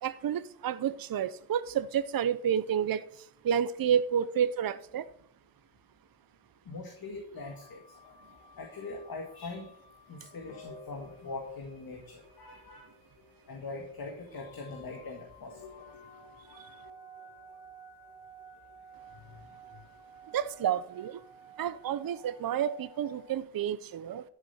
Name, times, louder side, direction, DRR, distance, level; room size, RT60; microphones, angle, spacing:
voice 1, 0.0-5.1 16.5-16.7 20.3-21.2 21.6-24.2, right 9 dB, 60° right, 0.6 m, -30 dB
voice 2, 6.7-7.8 8.6-9.7 10.1-12.9 13.5-15.6 19.3-19.8, left 3 dB, 60° left, 2.1 m, -42 dB
sound 1, 7.4-23.4, equal, 85° left, 2.1 m, -53 dB
12.0 x 7.5 x 4.4 m
wide cardioid pair, 130°, 40 cm